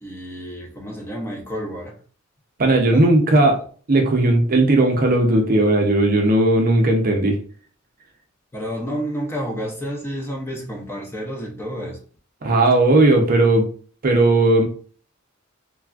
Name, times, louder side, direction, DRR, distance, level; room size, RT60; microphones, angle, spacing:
voice 1, 0.0-2.0 2.9-3.0 8.5-12.0, equal, 10° left, 0.5 m, -30 dB
voice 2, 2.6-3.6 3.9-7.4 12.4-13.6 14.0-14.6, right 2 dB, 45° right, 0.6 m, -16 dB
3.3 x 2.3 x 2.3 m
head